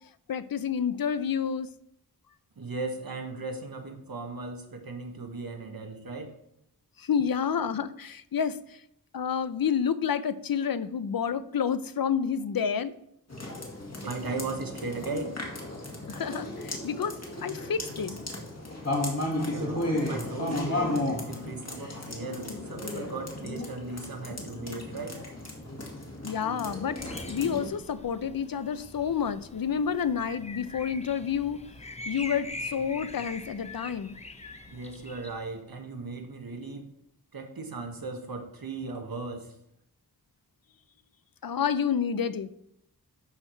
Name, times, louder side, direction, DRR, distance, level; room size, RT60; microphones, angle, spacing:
voice 1, 0.3-1.7 7.0-8.8 9.1-13.0 16.1-18.2 26.2-27.0 27.3-31.6 32.1-34.2 41.4-42.5, left 7 dB, 70° left, 14 dB, 0.6 m, -29 dB
voice 2, 2.6-6.4 14.0-15.4 19.5-25.2 34.7-36.9 37.3-39.6, right 3 dB, 75° right, 4 dB, 1.4 m, -37 dB
sound 1, 13.3-27.7, left 1 dB, 45° left, 2.0 m, -34 dB
sound 2, 27.0-35.6, left 2 dB, 20° left, 0.7 m, -43 dB
11.5 x 4.5 x 4.4 m, 0.77 s
wide cardioid pair, 70°, 36 cm